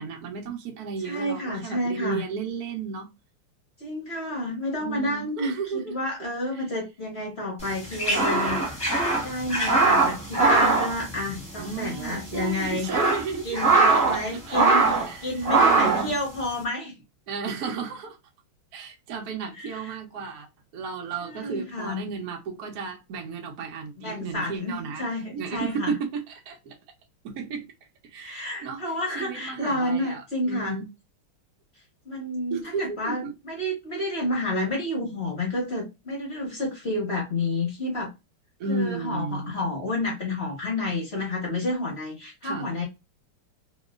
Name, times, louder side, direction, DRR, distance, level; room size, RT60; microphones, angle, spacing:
voice 1, 0.0-3.1 4.8-6.0 11.6-14.2 14.5-16.2 17.3-18.2 18.7-20.5 20.7-25.1 25.3-26.8 27.2-27.7 28.0-30.9 32.5-33.3 38.6-39.5 42.4-42.7, right 5 dB, 60° right, 1.0 m, -34 dB
voice 2, 1.0-2.2 3.8-12.9 13.4-16.9 19.6-20.0 21.2-22.1 24.0-25.9 28.2-30.8 32.0-38.1 38.7-42.9, left 1 dB, 45° left, 0.9 m, -30 dB
sound 1, 7.7-11.8 12.0-12.1 12.6-14.2 14.5-15.1 15.4-16.1, right 3 dB, 5° left, 1.0 m, -21 dB
2.9 x 2.9 x 2.3 m
omnidirectional pair, 2.3 m